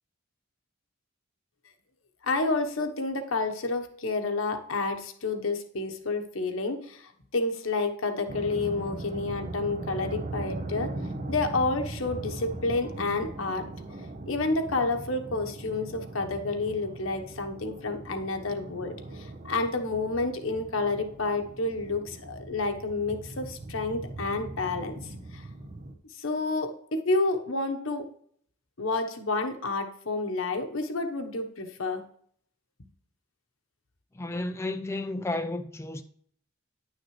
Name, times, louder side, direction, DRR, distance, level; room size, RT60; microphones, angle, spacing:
voice 1, 2.2-10.9 11.3-13.6 14.2-24.9 25.3-25.4 26.2-28.1 28.8-32.0, left 3 dB, 85° left, 1.1 m, -29 dB
sound 1, 8.3-25.9, right 2 dB, 40° right, 0.9 m, -40 dB
voice 2, 34.1-36.0, left 2 dB, 15° left, 0.4 m, -32 dB
10.0 x 6.3 x 3.2 m
head